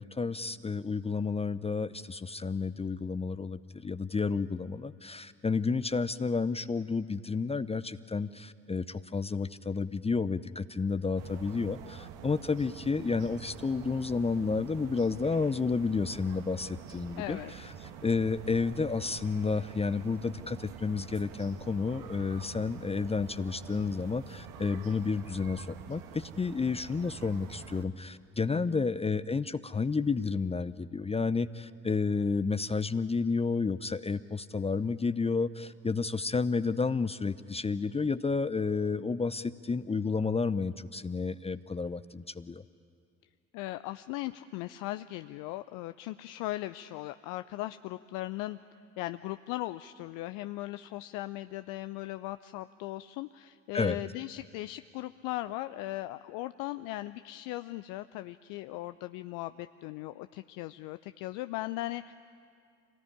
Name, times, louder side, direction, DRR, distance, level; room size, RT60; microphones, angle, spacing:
voice 1, 0.0-17.4 18.0-42.6 53.7-54.0, left 4 dB, 15° left, 14 dB, 0.7 m, -31 dB
sound 1, 11.2-27.8, right 8 dB, 65° right, 1.7 m, -47 dB
voice 2, 17.2-17.5 28.5-28.8 43.5-48.6 49.0-62.1, left 17 dB, 60° left, 12 dB, 0.7 m, -38 dB
26.5 x 19.0 x 9.9 m, 2.4 s
figure-of-eight pair, 50°, 36 cm